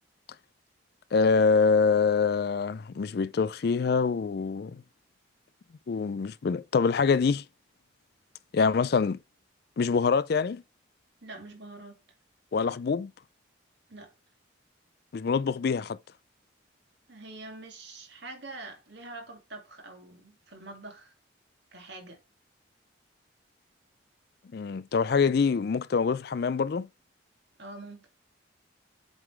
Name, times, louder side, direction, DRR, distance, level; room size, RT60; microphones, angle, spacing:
voice 1, 1.1-4.8 5.9-7.4 8.5-9.2 9.8-10.6 12.5-13.1 15.1-16.0 24.5-26.9, left 5 dB, 50° left, 0.4 m, -25 dB
voice 2, 11.2-12.0 13.9-14.1 17.1-21.1 21.7-22.2 27.6-28.1, right 2 dB, 60° right, 2.3 m, -45 dB
7.9 x 3.9 x 4.7 m
head